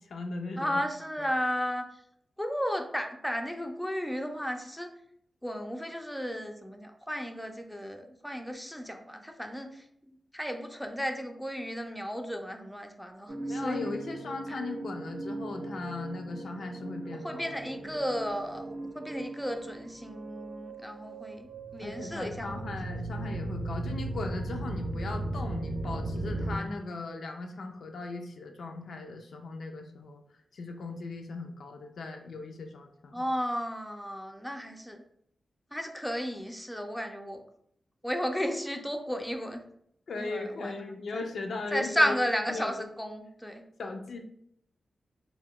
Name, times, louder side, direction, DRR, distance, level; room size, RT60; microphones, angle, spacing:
voice 1, 0.0-0.8 13.5-17.5 21.8-30.2 30.5-33.3 40.1-42.1 42.5-42.9 43.8-44.2, left 3 dB, 80° left, 3 dB, 0.3 m, -38 dB
voice 2, 0.6-1.8 2.4-4.9 5.4-13.8 17.2-21.5 21.7-22.5 33.1-35.0 35.7-37.4 38.0-39.6 40.2-40.7 41.1-41.2 41.7-43.6, equal, 5° left, 4 dB, 0.3 m, -33 dB
sound 1, 13.3-26.6, right 2 dB, 65° right, 0.6 m, -37 dB
2.2 x 2.1 x 3.5 m, 0.71 s
wide cardioid pair, 80°, 0 cm